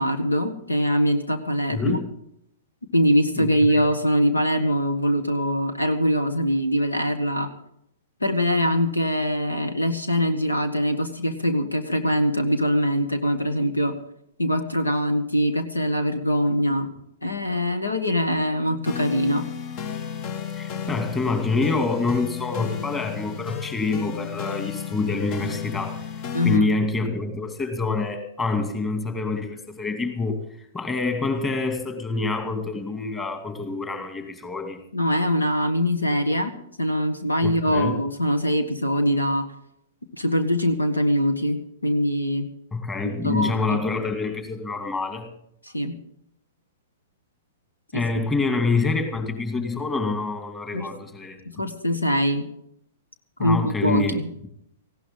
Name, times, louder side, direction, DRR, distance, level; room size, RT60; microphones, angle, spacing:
voice 1, 0.0-2.0 2.9-7.5 8.2-14.0 14.4-16.9 17.2-19.5 26.3-26.7 34.9-39.5 40.2-42.5 43.2-43.8 45.7-46.0 47.9-48.3 50.7-50.9 51.6-52.5 53.4-54.3, equal, 80° left, 9 dB, 1.6 m, -23 dB
voice 2, 1.7-2.1 3.4-3.8 20.5-26.0 26.4-30.4 30.7-34.8 37.4-38.0 42.7-45.3 47.9-51.6 53.4-54.2, left 3 dB, 15° left, 6 dB, 2.5 m, -26 dB
sound 1, 18.8-26.6, left 7 dB, 35° left, 0.9 m, -33 dB
18.5 x 16.0 x 3.8 m, 0.75 s
figure-of-eight pair, 110°, 0 cm